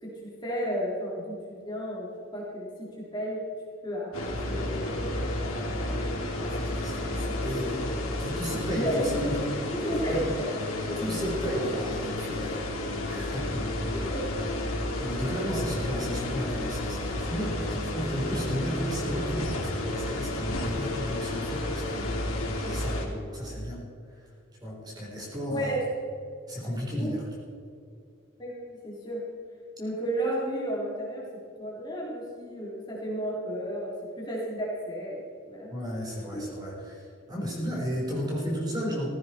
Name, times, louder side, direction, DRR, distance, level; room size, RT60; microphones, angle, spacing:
voice 1, 0.0-2.7 3.0-3.4 3.8-5.7 8.7-9.1 9.8-11.2 14.1-14.2 15.5-15.6 25.5-25.8 27.0-27.1 28.4-29.2 29.8-31.2 31.6-35.2 35.5-35.7 36.3-36.4, equal, 20° left, -5 dB, 3.6 m, -33 dB
sound 1, 4.1-23.0, left 1 dB, 90° left, 3.0 m, -31 dB
voice 2, 5.5-6.1 6.3-7.9 8.2-9.6 10.1-10.3 10.7-12.7 13.1-13.7 13.9-14.5 14.9-23.0 23.3-24.3 24.6-25.9 26.5-27.3 35.7-39.1, equal, 20° right, -3 dB, 4.0 m, -34 dB
16.5 x 15.5 x 4.4 m, 2.4 s
head